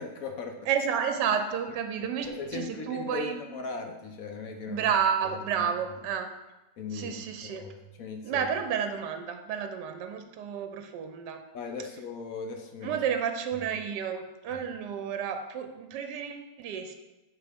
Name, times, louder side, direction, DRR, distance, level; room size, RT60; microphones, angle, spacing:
voice 1, 0.0-0.7 2.0-4.9 5.2-5.7 6.8-8.5 11.5-13.0 13.6-13.7 14.5-14.7, left 4 dB, 65° left, 4 dB, 1.0 m, -39 dB
voice 2, 0.7-3.3 4.7-6.3 6.9-7.6 8.2-11.4 12.8-17.0, right 7 dB, 80° right, 7 dB, 1.2 m, -31 dB
10.5 x 4.5 x 3.5 m, 1.0 s
omnidirectional pair, 1.9 m